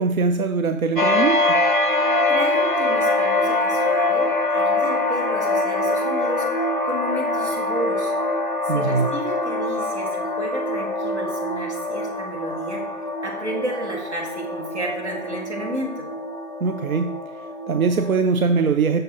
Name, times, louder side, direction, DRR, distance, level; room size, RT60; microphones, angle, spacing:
voice 1, 0.0-1.6 8.7-9.1 16.6-19.0, right 5 dB, 90° right, 8 dB, 0.5 m, -22 dB
sound 1, 1.0-18.2, left 2 dB, 40° left, 0.5 m, -24 dB
voice 2, 2.3-8.1 8.6-16.1, right 1 dB, 55° right, -1 dB, 1.8 m, -32 dB
6.3 x 4.6 x 4.4 m, 1.1 s
figure-of-eight pair, 170°, 41 cm